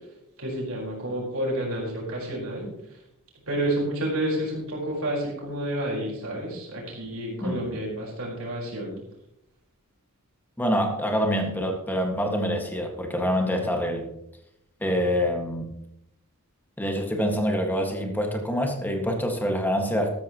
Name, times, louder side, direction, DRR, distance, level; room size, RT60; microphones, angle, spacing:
voice 1, 0.4-2.7 3.5-9.0, right 1 dB, 65° right, -3 dB, 4.8 m, -30 dB
voice 2, 10.6-14.1 14.8-15.7 16.8-20.1, equal, 10° left, 2 dB, 2.0 m, -26 dB
13.5 x 13.0 x 3.1 m, 0.80 s
head